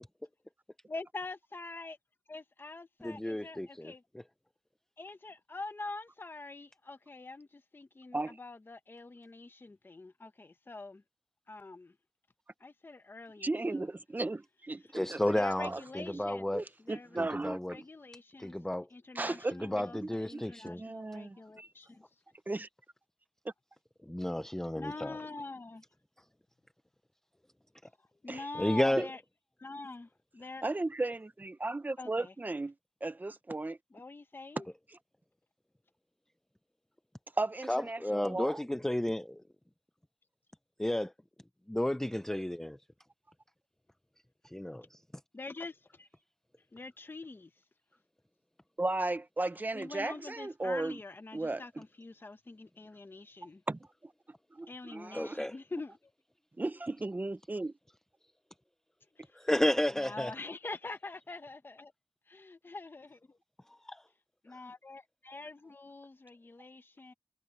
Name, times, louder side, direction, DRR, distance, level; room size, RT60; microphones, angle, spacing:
voice 1, 0.9-2.0 2.3-4.0 5.0-11.0 11.5-12.0 12.6-13.9 15.3-16.4 16.8-17.3 17.7-18.6 18.9-22.0 24.8-25.8 28.2-29.2 29.6-30.6 32.0-32.3 33.9-34.7 45.3-46.1 46.7-47.5 49.7-53.6 54.7-56.0 59.2-59.4 60.0-61.9 62.3-63.4 64.4-67.1, left 3 dB, 30° left, 1.1 m, -45 dB
voice 2, 3.0-4.2 14.9-16.6 17.2-17.8 18.4-18.9 19.6-20.8 24.0-25.2 28.6-29.1 37.7-39.4 40.8-41.1 41.7-42.8 44.5-45.0 55.1-55.5 59.3-60.3 63.7-64.0, left 1 dB, 5° left, 0.5 m, -32 dB
voice 3, 13.4-15.8 16.1-16.2 16.5-17.8 19.1-20.4 20.8-21.7 22.5-22.7 23.4-23.5 28.3-28.4 29.0-29.1 30.6-32.7 33.0-33.8 37.4-38.6 48.8-51.0 51.3-51.8 53.7-54.1 54.5-55.4 56.6-57.7, right 2 dB, 25° right, 1.0 m, -36 dB
wide cardioid pair, 105°, 8 cm